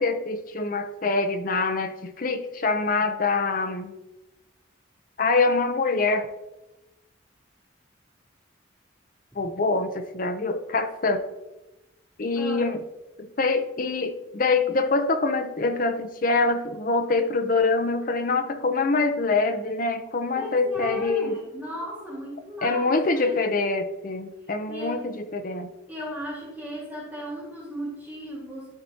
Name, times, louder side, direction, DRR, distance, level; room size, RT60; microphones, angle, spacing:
voice 1, 0.0-3.9 5.2-6.3 9.4-11.2 12.2-12.8 13.2-21.4 22.6-25.7, left 3 dB, 45° left, 8 dB, 0.6 m, -25 dB
voice 2, 12.3-12.8 20.4-23.4 24.7-25.1 25.9-28.7, equal, 10° right, -6 dB, 1.8 m, -36 dB
12.0 x 4.3 x 2.8 m, 0.99 s
head